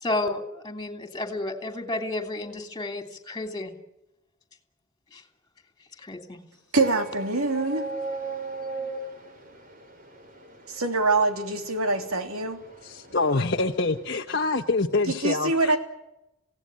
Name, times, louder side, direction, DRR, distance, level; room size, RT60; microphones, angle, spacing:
voice 1, 0.0-3.7 5.1-5.2 6.0-6.4, left 2 dB, 20° left, 6 dB, 3.0 m, -31 dB
voice 2, 6.7-7.9 10.7-12.6 15.1-15.8, right 3 dB, 90° right, 6 dB, 3.1 m, -24 dB
sound 1, 6.8-14.1, right 2 dB, 40° right, 3.8 m, -38 dB
voice 3, 12.8-15.8, left 3 dB, 50° left, 1 dB, 1.1 m, -26 dB
27.0 x 17.5 x 9.6 m, 0.92 s
head